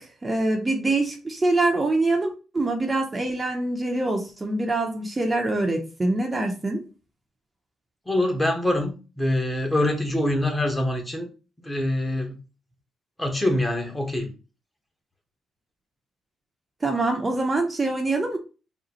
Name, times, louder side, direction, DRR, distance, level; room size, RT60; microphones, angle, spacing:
voice 1, 0.0-6.8 16.8-18.4, right 2 dB, 25° right, 0.8 m, -24 dB
voice 2, 8.1-11.3 11.6-12.4 13.2-14.3, left 1 dB, 10° left, 1.1 m, -24 dB
3.9 x 2.2 x 4.3 m
cardioid pair, 90°, 0 cm